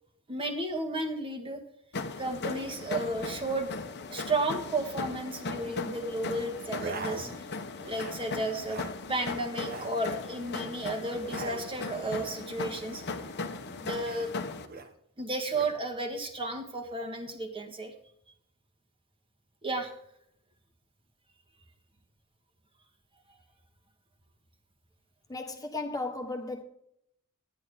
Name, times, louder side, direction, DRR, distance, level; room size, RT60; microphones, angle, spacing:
voice 1, 0.3-1.6 2.2-3.7 4.1-7.3 7.8-8.8 9.1-13.0 13.7-14.3 15.2-17.9 19.6-19.9, right 2 dB, 25° right, 1.7 m, -33 dB
sound 1, 1.9-14.7, left 3 dB, 50° left, 0.9 m, -38 dB
sound 2, 6.7-7.5 7.8-8.2 8.5-9.0 9.5-10.0 11.2-11.7 14.0-14.9 15.5-15.8, right 4 dB, 45° right, 1.1 m, -42 dB
voice 2, 25.3-26.6, left 2 dB, 15° left, 1.3 m, -35 dB
11.5 x 10.0 x 3.6 m
head